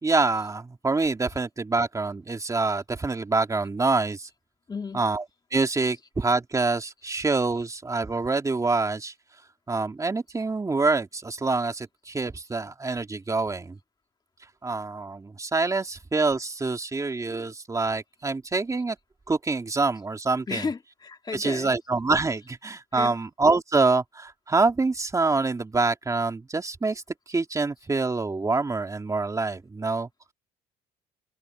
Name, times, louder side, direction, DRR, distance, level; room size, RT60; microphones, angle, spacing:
voice 1, 0.0-4.3 4.9-5.2 5.5-9.1 9.7-13.8 14.6-19.0 19.3-20.7 21.3-27.0 27.3-30.3, right 3 dB, 20° right, 2.8 m, -26 dB
voice 2, 4.7-5.0 20.5-21.7 22.9-23.2, left 4 dB, 25° left, 2.2 m, -33 dB
cardioid pair, 110°, 17 cm